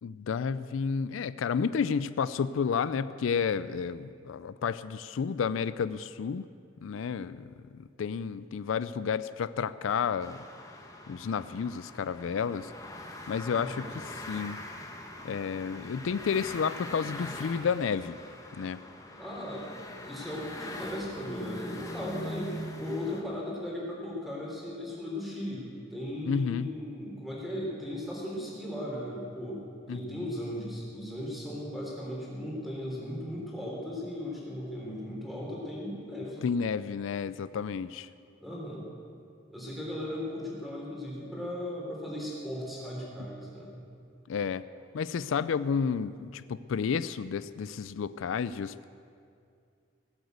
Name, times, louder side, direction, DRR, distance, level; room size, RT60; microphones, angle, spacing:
voice 1, 0.0-6.5 6.8-10.4 11.1-12.7 13.3-14.6 15.2-18.2 18.5-18.8 26.3-26.7 29.9-30.3 36.4-38.1 44.3-44.6 44.9-48.9, left 6 dB, 85° left, 15 dB, 0.4 m, -31 dB
sound 1, 10.2-23.2, left 1 dB, 15° left, 1.2 m, -42 dB
voice 2, 13.5-13.8 19.2-19.7 20.0-36.4 38.4-38.9 39.5-43.8, left 1 dB, ahead, -4 dB, 3.4 m, -37 dB
18.0 x 8.0 x 8.0 m, 2.4 s
head